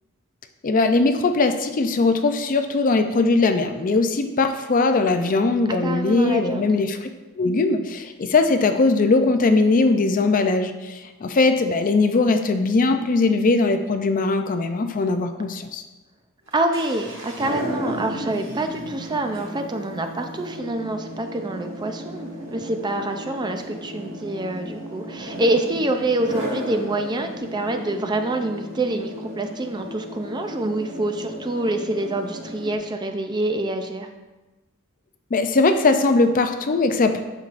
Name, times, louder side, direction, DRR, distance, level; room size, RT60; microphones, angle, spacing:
voice 1, 0.6-7.1 7.4-15.8 35.3-37.2, left 3 dB, 40° left, 7 dB, 0.4 m, -20 dB
voice 2, 5.7-6.7 16.5-34.1, right 2 dB, 20° right, 5 dB, 0.4 m, -26 dB
sound 1, 16.5-32.8, equal, 60° right, 2.2 m, -34 dB
8.4 x 6.3 x 2.5 m, 1.1 s
head